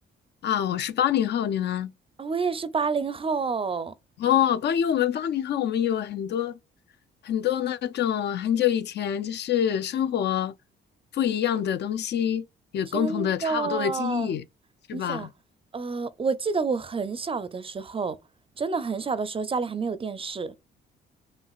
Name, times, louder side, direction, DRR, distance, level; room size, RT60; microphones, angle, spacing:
voice 1, 0.4-1.9 4.2-6.6 7.2-10.5 11.1-12.4 12.7-14.4 14.9-15.3, left 10 dB, 60° left, 0.4 m, -26 dB
voice 2, 2.2-3.9 12.9-14.3 14.9-15.3 15.7-18.2 18.6-20.5, right 5 dB, 30° right, 0.5 m, -29 dB
5.7 x 2.3 x 2.4 m
cardioid pair, 90°, 20 cm